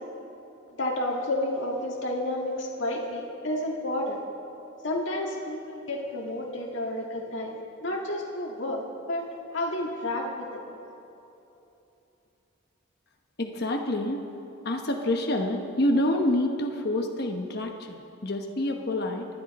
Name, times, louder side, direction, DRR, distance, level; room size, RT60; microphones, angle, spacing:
voice 1, 0.8-4.2 4.8-8.8 9.1-9.3 9.5-10.8, left 1 dB, 70° left, -2 dB, 1.9 m, -31 dB
voice 2, 13.4-14.2 14.6-19.3, left 1 dB, 55° left, 2 dB, 1.1 m, -27 dB
26.0 x 11.5 x 4.2 m, 2.9 s
head